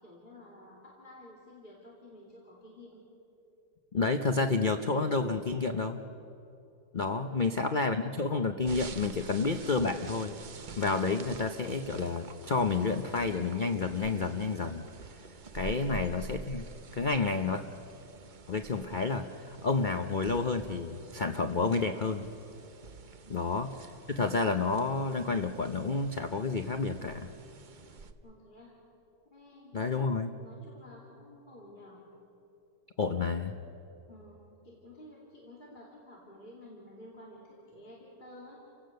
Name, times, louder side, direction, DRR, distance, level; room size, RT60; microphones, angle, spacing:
voice 1, 0.0-3.1 7.2-8.0 15.7-16.1 23.2-23.6 28.2-28.7 29.3-29.8 30.3-32.1 33.0-33.4 34.1-38.6, left 1 dB, 25° left, -4 dB, 2.8 m, -52 dB
voice 2, 3.9-6.0 6.9-10.4 10.8-14.8 15.5-16.6 17.0-17.6 18.5-22.2 23.3-23.7 24.1-27.3 29.7-30.3 33.0-33.5, left 4 dB, 90° left, 7 dB, 0.4 m, -30 dB
sound 1, 8.6-28.1, right 4 dB, 65° right, 0.4 m, -47 dB
29.5 x 16.0 x 6.5 m, 2.9 s
omnidirectional pair, 2.0 m